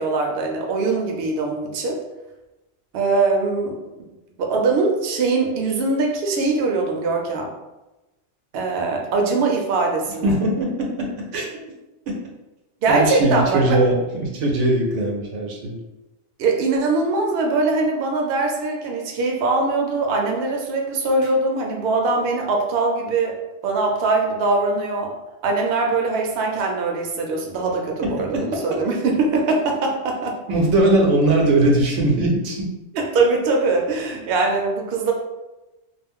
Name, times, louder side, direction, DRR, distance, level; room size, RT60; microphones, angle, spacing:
voice 1, 0.0-2.0 2.9-3.8 4.4-7.5 8.5-10.3 12.8-13.8 16.4-23.4 23.6-25.1 25.4-30.3 32.9-35.1, right 3 dB, 65° right, 1 dB, 0.7 m, -22 dB
voice 2, 10.2-11.5 12.1-12.2 12.9-15.8 28.0-28.4 30.5-32.7, right 1 dB, 90° right, 0 dB, 0.9 m, -20 dB
2.4 x 2.0 x 3.5 m, 1.0 s
omnidirectional pair, 1.2 m